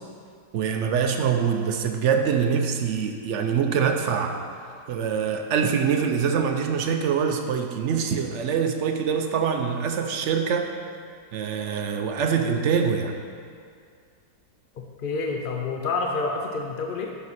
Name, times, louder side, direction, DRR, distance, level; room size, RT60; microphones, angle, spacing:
voice 1, 0.5-4.4 4.9-10.7 11.3-13.2, right 6 dB, 65° right, 4 dB, 0.7 m, -24 dB
voice 2, 15.0-17.1, left 3 dB, 65° left, 2 dB, 0.5 m, -28 dB
9.4 x 6.2 x 4.1 m, 2.2 s
omnidirectional pair, 1.7 m